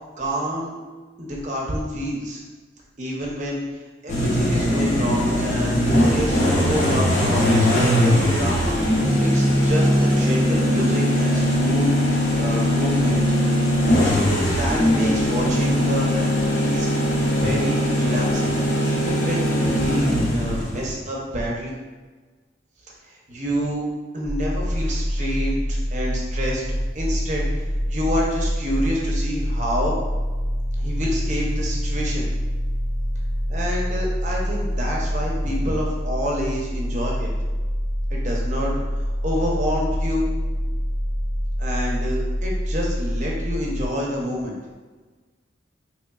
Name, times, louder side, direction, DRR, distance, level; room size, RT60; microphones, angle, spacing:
voice 1, 0.2-0.9 1.2-2.4 3.0-3.6 4.0-8.8 9.2-13.2 14.6-16.9 17.4-18.5 18.8-21.7 23.0-23.8 24.1-27.5 27.9-29.9 30.8-32.3 33.5-37.3 38.1-40.3 41.6-44.5, equal, 40° right, -3 dB, 0.7 m, -28 dB
sound 1, 4.1-20.9, equal, 40° left, 0.7 m, -20 dB
sound 2, 24.2-43.9, equal, 85° left, 0.9 m, -26 dB
4.0 x 3.0 x 2.3 m, 1.3 s
head